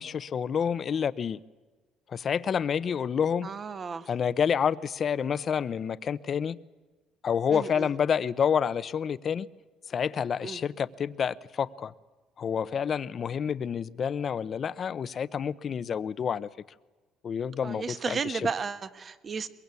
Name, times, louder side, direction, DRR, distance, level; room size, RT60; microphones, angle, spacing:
voice 1, 0.0-1.4 2.1-3.5 4.1-6.6 7.2-9.5 9.9-11.9 12.4-16.5 17.2-18.4, left 7 dB, 40° left, 0.8 m, -28 dB
voice 2, 3.4-4.1 7.5-7.9 10.4-10.6 17.6-19.5, right 5 dB, 30° right, 1.3 m, -33 dB
23.0 x 22.5 x 8.4 m
cardioid pair, 125°, 0 cm